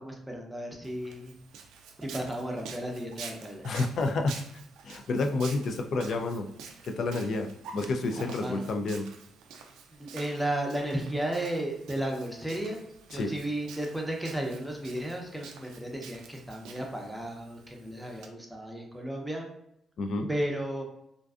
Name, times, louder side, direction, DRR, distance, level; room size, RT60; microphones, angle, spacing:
voice 1, 0.0-1.3 2.0-3.7 8.1-8.6 9.9-12.8 13.1-19.5 20.3-20.8, right 1 dB, 5° right, 0 dB, 0.6 m, -34 dB
Walk footsteps, 0.8-18.3, right 5 dB, 90° right, 0.3 m, -48 dB
voice 2, 3.6-4.4 4.8-6.5 6.8-9.1 13.1-13.3 20.0-20.3, left 3 dB, 60° left, 5 dB, 0.3 m, -29 dB
2.5 x 2.2 x 2.4 m, 0.79 s
cardioid pair, 90°, 0 cm